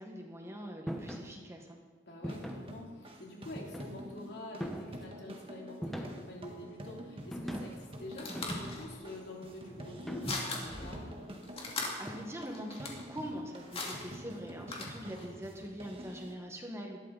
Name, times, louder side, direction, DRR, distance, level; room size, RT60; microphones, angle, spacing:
voice 1, 0.0-1.8 12.0-17.0, equal, 15° right, 1 dB, 1.6 m, -43 dB
sound 1, 0.9-1.3 2.2-2.7 3.6-4.1 4.6-5.1 5.8-6.4 7.3-7.8 8.3-9.0 10.1-10.7, equal, ahead, 1.2 m, -40 dB
voice 2, 2.0-11.2, left 1 dB, 65° left, -2 dB, 3.4 m, -46 dB
sound 2, 2.2-16.3, equal, 30° right, 1.8 m, -48 dB
sound 3, 7.7-15.3, left 3 dB, 35° left, 2.3 m, -42 dB
19.0 x 13.0 x 4.2 m, 1.5 s
head